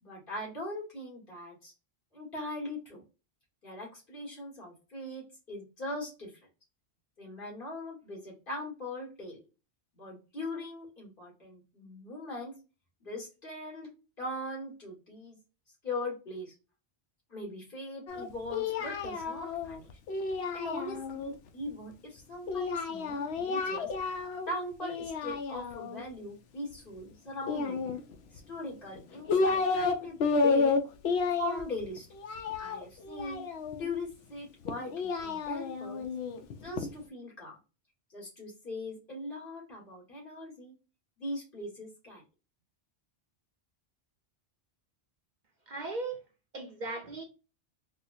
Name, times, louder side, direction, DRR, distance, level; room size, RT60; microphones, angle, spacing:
voice 1, 0.0-1.7 2.1-3.0 3.6-6.3 7.2-9.4 9.9-12.5 13.0-13.9 14.2-15.4 15.8-16.5 17.3-19.9 20.5-23.9 24.5-27.9 28.3-30.7 31.4-32.1 32.6-33.4 33.8-36.0 36.6-37.6 38.1-40.7 41.2-42.2, left 1 dB, 55° left, 1.8 m, -40 dB
Singing, 18.1-21.3 22.5-24.5 24.8-26.0 27.4-28.4 29.0-29.9 30.2-33.9 34.6-36.9, left 4 dB, 80° left, 0.8 m, -31 dB
voice 2, 45.7-46.2 46.5-47.2, right 3 dB, 50° right, 0.6 m, -37 dB
4.3 x 2.2 x 2.5 m
omnidirectional pair, 1.1 m